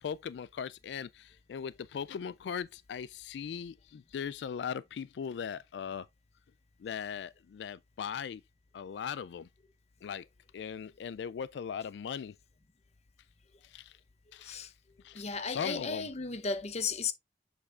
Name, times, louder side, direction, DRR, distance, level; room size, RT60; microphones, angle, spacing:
voice 1, 0.0-6.1 6.8-8.4 8.7-9.5 10.0-10.2 10.5-12.3 13.6-14.0 14.3-14.6 15.0-16.1, left 7 dB, 75° left, 0.3 m, -39 dB
voice 2, 15.1-17.1, left 5 dB, 40° left, 0.7 m, -34 dB
7.2 x 6.5 x 2.3 m
head